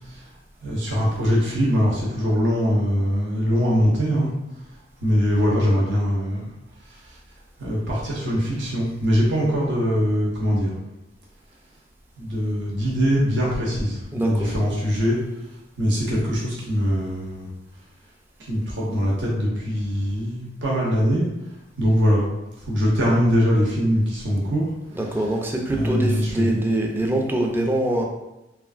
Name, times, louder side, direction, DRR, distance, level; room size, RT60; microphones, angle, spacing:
voice 1, 0.6-4.3 5.0-6.5 7.6-10.7 12.2-15.2 15.8-17.5 18.5-21.3 21.8-22.2 22.7-24.7 25.0-26.6, equal, 80° right, -4 dB, 0.9 m, -22 dB
voice 2, 14.1-14.5 24.9-28.0, right 1 dB, 10° right, 1 dB, 0.4 m, -24 dB
3.1 x 2.5 x 2.4 m, 0.95 s
head